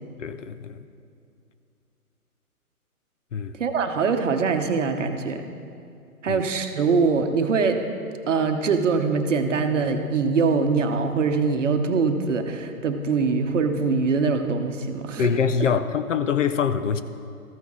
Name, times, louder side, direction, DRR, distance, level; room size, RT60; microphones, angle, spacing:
voice 1, 0.2-0.8 3.3-3.5 6.3-6.4 15.2-17.0, left 6 dB, 55° left, 0.5 m, -24 dB
voice 2, 3.6-5.4 6.2-7.8 8.3-15.3, right 4 dB, 55° right, 0.9 m, -23 dB
14.0 x 5.9 x 3.6 m
hypercardioid pair, 150°, 45 cm